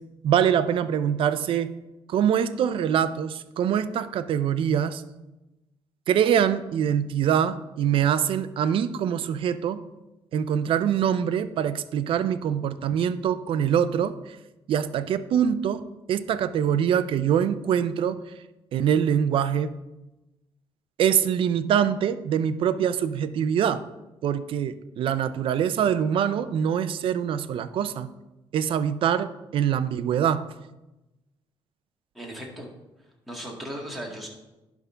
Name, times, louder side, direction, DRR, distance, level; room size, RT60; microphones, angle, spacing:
voice 1, 0.2-1.7 2.1-5.0 6.1-9.8 10.3-14.4 14.7-15.8 16.1-18.2 18.7-19.7 21.0-23.8 24.2-28.1 28.5-30.4, right 9 dB, 65° right, 13 dB, 0.5 m, -24 dB
voice 2, 32.1-32.7 33.3-34.3, equal, ahead, -2 dB, 2.1 m, -36 dB
11.0 x 3.6 x 5.6 m, 1.0 s
cardioid pair, 105°, 10 cm